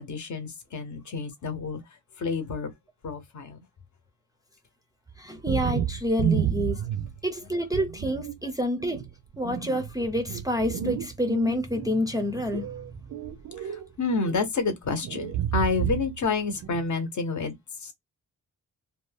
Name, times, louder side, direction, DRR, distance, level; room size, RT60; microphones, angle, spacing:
voice 1, 0.0-1.8 2.2-2.7 3.0-3.6 13.6-17.5 17.8-17.9, left 4 dB, 60° left, 0.8 m, -29 dB
voice 2, 5.2-6.8 7.2-9.0 9.4-13.0, left 1 dB, 10° right, 0.4 m, -28 dB
sound 1, 5.4-7.3 7.7-8.4 8.8-11.9 12.3-13.9 14.1-14.5 15.0-16.2 16.5-16.9, right 9 dB, 85° right, 0.5 m, -30 dB
2.6 x 2.2 x 3.2 m
wide cardioid pair, 165°, 32 cm